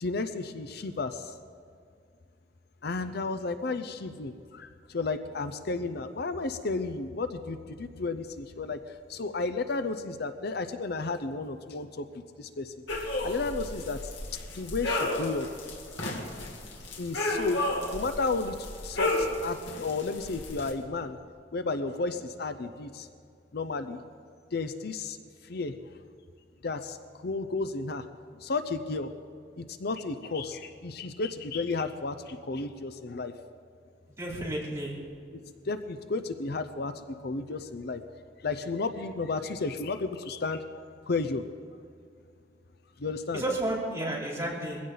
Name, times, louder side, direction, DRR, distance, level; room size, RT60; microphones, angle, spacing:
voice 1, 0.0-1.4 2.8-12.1 12.4-14.0 14.5-15.5 17.0-17.6 17.9-21.2 21.5-23.1 23.5-24.0 24.5-25.2 25.4-25.8 26.6-28.1 28.4-29.1 29.6-33.3 35.6-38.0 38.4-40.6 41.1-41.4 43.0-43.4, left 3 dB, 60° left, 10 dB, 0.7 m, -33 dB
sound 1, 12.9-20.7, left 1 dB, 80° left, 2.3 m, -33 dB
voice 2, 34.2-34.9 43.3-44.8, right 1 dB, 15° right, -5 dB, 3.6 m, -31 dB
21.0 x 16.0 x 4.0 m, 2.3 s
head